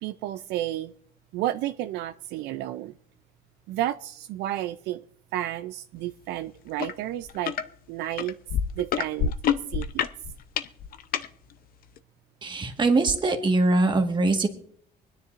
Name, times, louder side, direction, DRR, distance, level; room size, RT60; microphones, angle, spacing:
voice 1, 0.0-0.9 1.3-2.9 3.7-5.0 5.3-7.5 7.9-8.4 8.8-9.3 9.7-10.0, right 13 dB, 85° right, 0.4 m, -31 dB
sound 1, 6.8-6.9 7.3-7.6 8.2-11.3 12.0-12.1, left 8 dB, 60° left, 0.7 m, -27 dB
voice 2, 12.4-14.5, right 2 dB, 25° right, 1.6 m, -22 dB
24.5 x 9.9 x 2.5 m
cardioid pair, 110°, 17 cm